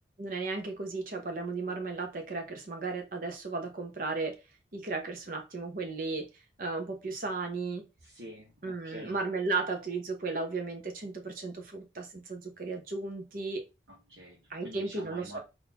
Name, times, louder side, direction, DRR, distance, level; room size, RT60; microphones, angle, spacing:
voice 1, 0.2-4.4 4.7-6.3 6.6-7.9 8.6-13.6 14.5-15.4, right 3 dB, 50° right, 0.8 m, -35 dB
voice 2, 8.0-9.2 13.9-15.4, equal, 75° right, 1.2 m, -48 dB
3.8 x 2.7 x 2.8 m
head